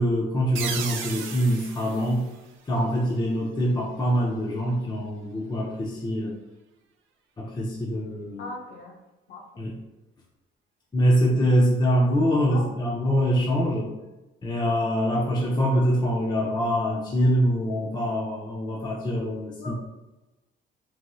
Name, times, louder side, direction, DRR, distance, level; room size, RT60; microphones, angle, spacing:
voice 1, 0.0-2.3 2.7-6.3 7.4-8.5 9.6-9.8 10.9-13.9 14.4-19.7, equal, 20° left, -4 dB, 0.6 m, -24 dB
sound 1, 0.6-3.1, right 6 dB, 80° right, 0.4 m, -35 dB
voice 2, 8.4-8.9 9.3-9.4 12.5-12.7 19.6-19.7, left 2 dB, 75° left, 1 dB, 0.7 m, -38 dB
3.1 x 2.6 x 2.2 m, 1.0 s
cardioid pair, 90°, 20 cm